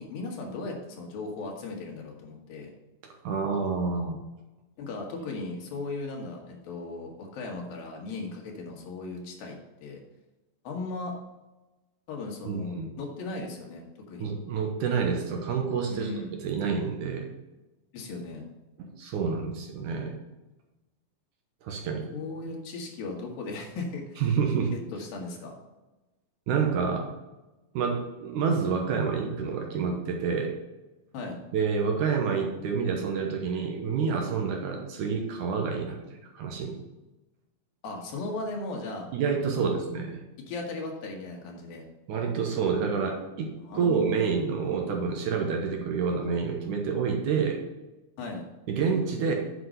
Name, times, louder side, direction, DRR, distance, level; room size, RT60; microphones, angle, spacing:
voice 1, 0.0-2.7 4.8-10.0 10.6-11.1 12.1-14.3 15.9-16.3 17.9-18.4 22.1-24.2 24.9-25.6 31.1-31.4 37.8-39.1 39.6-39.8 40.5-41.8 43.7-44.2 48.2-48.4, left 3 dB, 90° left, 0 dB, 3.4 m, -37 dB
voice 2, 3.2-4.2 12.5-12.9 14.2-16.1 16.4-17.3 18.8-20.2 21.6-22.1 24.2-24.7 26.5-27.1 27.7-30.5 31.5-36.0 36.3-36.8 39.1-40.2 42.1-47.6 48.7-49.3, right 5 dB, 70° right, 2 dB, 2.3 m, -28 dB
7.9 x 5.0 x 6.5 m, 1.1 s
omnidirectional pair, 4.0 m